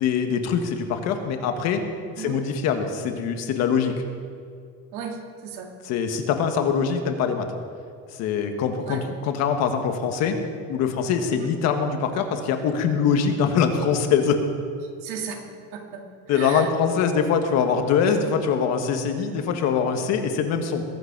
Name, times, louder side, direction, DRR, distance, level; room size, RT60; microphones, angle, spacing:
voice 1, 0.0-1.8 2.2-3.9 5.8-7.5 8.1-10.4 10.7-14.4 16.3-20.8, left 6 dB, 50° left, 6 dB, 1.5 m, -23 dB
voice 2, 4.9-5.7 8.8-9.0 11.3-11.5 15.0-15.5 15.7-16.7 18.1-18.2, right 6 dB, 80° right, 2 dB, 2.4 m, -35 dB
21.5 x 8.0 x 6.0 m, 2.4 s
cardioid pair, 175°, 33 cm